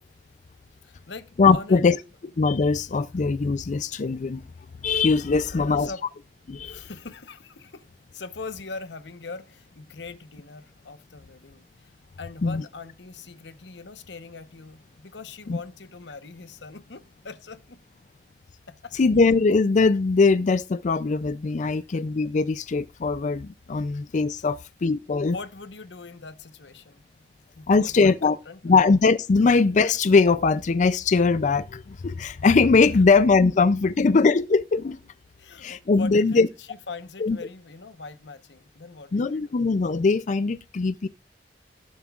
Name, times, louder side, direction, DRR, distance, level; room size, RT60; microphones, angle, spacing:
voice 1, 0.8-1.9 5.5-6.0 6.6-17.8 18.7-18.9 21.6-21.9 24.4-24.5 25.2-27.0 27.6-28.8 32.9-33.0 35.4-39.6, left 4 dB, 90° left, 1.0 m, -41 dB
voice 2, 1.4-2.0 2.4-4.4 4.8-5.9 6.5-6.8 12.4-12.6 15.5-15.6 19.0-25.4 27.7-28.4 28.6-35.0 35.6-36.5 37.2-37.4 39.1-41.1, left 4 dB, 45° left, 0.4 m, -21 dB
18.0 x 7.4 x 2.4 m
head